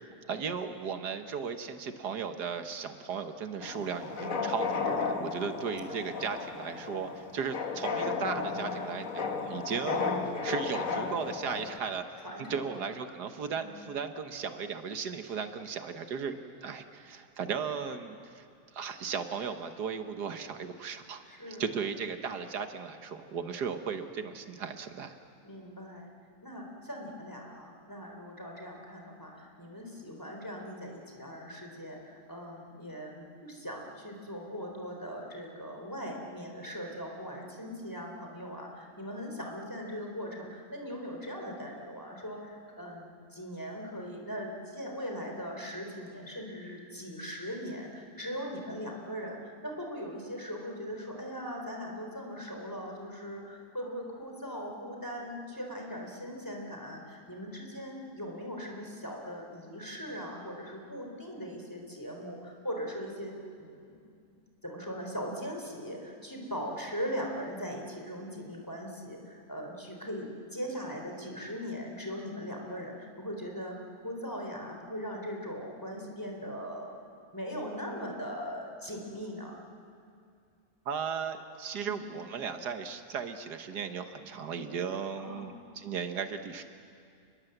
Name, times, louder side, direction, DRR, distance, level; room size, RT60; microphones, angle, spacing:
voice 1, 0.3-12.0 12.5-18.4 18.7-25.1 80.9-86.6, right 6 dB, 85° right, 8 dB, 1.8 m, -36 dB
sound 1, 3.6-11.8, left 4 dB, 55° left, 1.8 m, -34 dB
voice 2, 12.2-12.8 13.5-13.7 21.3-21.7 25.4-26.1 26.4-64.0 64.6-73.7 74.0-77.0 77.3-79.6 81.8-82.0 85.2-85.5, equal, 10° left, 1 dB, 3.9 m, -40 dB
29.5 x 21.0 x 8.0 m, 2.3 s
omnidirectional pair, 1.7 m